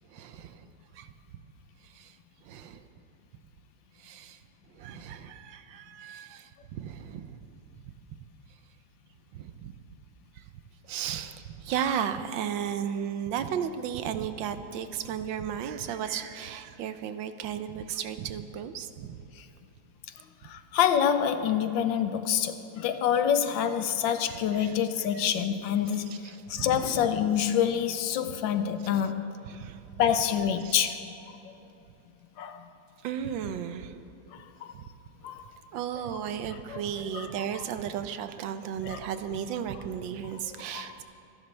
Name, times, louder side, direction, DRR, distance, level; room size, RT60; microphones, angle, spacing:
voice 1, 0.1-0.7 0.9-1.1 1.8-2.2 2.4-2.8 4.0-4.4 4.7-7.5 9.3-9.7 10.3-10.4 10.8-19.2 24.3-25.2 26.1-27.1 29.4-29.9 30.6-30.7 33.0-34.0 34.7-34.8 35.7-41.0, right 8 dB, 75° right, 10 dB, 1.4 m, -35 dB
voice 2, 20.4-26.2 26.5-29.3 30.0-31.0 32.4-32.6 34.3-34.7 35.2-35.4 36.7-36.8 37.1-37.3 38.8-39.0 40.7-40.9, left 9 dB, 75° left, 10 dB, 1.4 m, -27 dB
26.5 x 11.0 x 3.3 m, 2.9 s
omnidirectional pair, 2.2 m